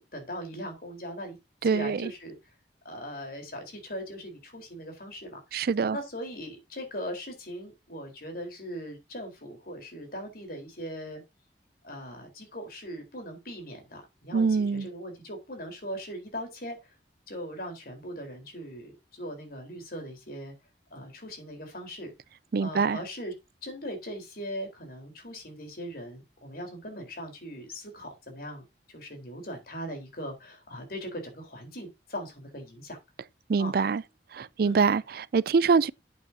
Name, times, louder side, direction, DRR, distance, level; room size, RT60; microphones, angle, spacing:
voice 1, 0.1-1.4 1.6-2.3 2.8-5.4 5.9-11.2 11.8-16.9 17.3-20.5 20.9-22.1 22.6-23.3 23.6-33.0 33.6-33.7 34.6-34.8, equal, 55° left, 4.2 m, -40 dB
voice 2, 1.6-2.1 5.5-6.0 14.3-14.9 22.5-23.0 33.5-34.0 34.3-35.9, right 5 dB, 60° right, 0.4 m, -24 dB
12.0 x 8.3 x 2.8 m
head